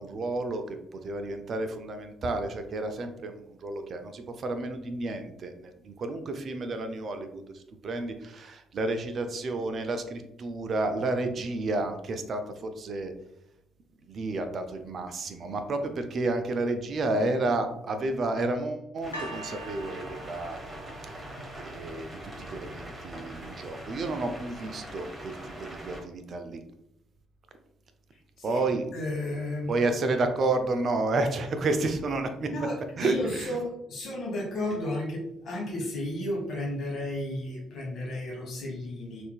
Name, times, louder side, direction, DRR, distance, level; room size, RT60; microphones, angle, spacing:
voice 1, 0.0-13.1 14.1-20.6 21.2-22.1 22.4-26.6 28.4-28.8 29.7-32.5 33.0-33.6, right 2 dB, 45° right, 8 dB, 0.4 m, -31 dB
sound 1, 19.0-26.0, equal, 25° right, 0.9 m, -42 dB
sound 2, 19.1-22.3 23.1-23.2, right 1 dB, 85° left, 0.4 m, -43 dB
voice 2, 28.9-29.8 32.4-39.2, left 1 dB, 50° left, -2 dB, 1.1 m, -33 dB
3.6 x 2.5 x 2.2 m, 0.81 s
figure-of-eight pair, 45°, 0 cm